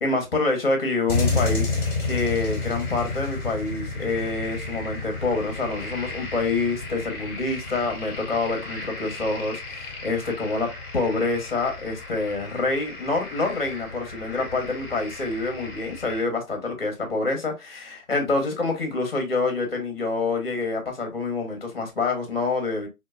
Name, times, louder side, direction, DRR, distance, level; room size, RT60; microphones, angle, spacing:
voice 1, 0.0-1.8 2.0-22.9, left 3 dB, 40° left, 1.3 m, -27 dB
sound 1, 1.1-16.2, left 3 dB, 10° left, 1.5 m, -32 dB
4.4 x 2.5 x 2.3 m
hypercardioid pair, 170°, 44 cm